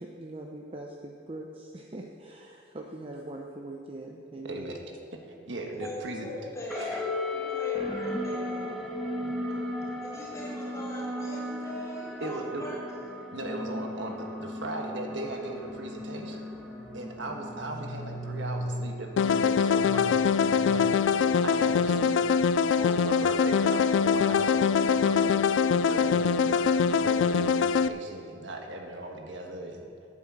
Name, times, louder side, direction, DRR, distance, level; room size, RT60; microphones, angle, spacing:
voice 1, 0.0-4.8, right 2 dB, 30° right, 0 dB, 0.7 m, -42 dB
voice 2, 4.4-4.8 5.1-6.3 6.8-7.0 9.5-9.8 12.2-12.6 13.3-16.4 16.9-21.1 21.4-22.4 22.8-24.5 24.8-25.4 25.8-29.9, right 2 dB, 75° right, 2 dB, 1.4 m, -38 dB
voice 3, 5.8-8.7 9.2-9.4 10.0-12.9, left 1 dB, 15° left, -7 dB, 3.4 m, -41 dB
sound 1, 6.7-21.5, left 1 dB, ahead, 1.5 m, -36 dB
sound 2, 19.2-27.9, left 6 dB, 80° left, 0.3 m, -23 dB
9.8 x 9.0 x 7.5 m, 2.6 s
head